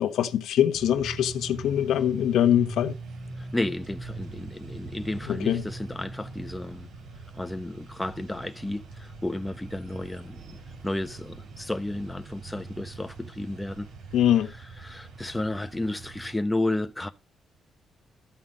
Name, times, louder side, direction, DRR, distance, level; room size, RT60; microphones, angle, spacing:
voice 1, 0.0-2.9 5.3-5.6 14.1-14.5, left 10 dB, 85° left, 1.2 m, -23 dB
sound 1, 0.7-16.3, right 3 dB, 75° right, 4.4 m, -42 dB
voice 2, 3.4-6.9 7.3-10.6 10.8-13.9 14.8-17.1, left 1 dB, 10° left, 0.9 m, -32 dB
14.0 x 5.7 x 5.2 m
cardioid pair, 105°, 0 cm